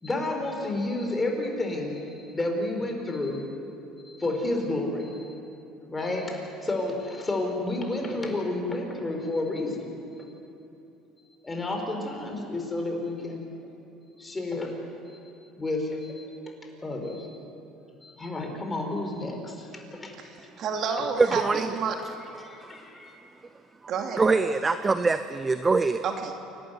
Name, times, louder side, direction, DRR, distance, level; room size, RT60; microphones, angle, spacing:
voice 1, 0.0-3.5 4.0-5.3 5.9-9.9 10.2-10.3 11.4-13.4 14.2-14.7 15.0-16.4 16.8-17.4 18.0-20.1 20.4-20.6 21.0-21.1 21.3-21.4 22.3-23.2, left 2 dB, 20° left, 2 dB, 4.6 m, -31 dB
voice 2, 20.6-22.0 23.9-24.4 26.0-26.4, right 5 dB, 50° right, 3 dB, 2.5 m, -29 dB
voice 3, 21.2-21.7 22.6-22.7 24.2-26.0, right 4 dB, 20° right, 11 dB, 0.7 m, -23 dB
28.0 x 12.5 x 9.5 m, 2.9 s
supercardioid pair, 100°, 0 cm